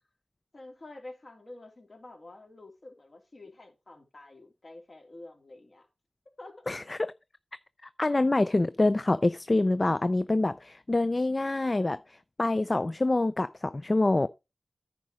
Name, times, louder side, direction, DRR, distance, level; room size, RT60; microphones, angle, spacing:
voice 1, 0.5-5.9 6.4-6.7, left 2 dB, 55° left, 3.2 m, -48 dB
voice 2, 6.7-7.0 7.8-14.3, left 2 dB, 40° left, 0.5 m, -26 dB
9.8 x 5.0 x 5.0 m
cardioid pair, 50°, 0 cm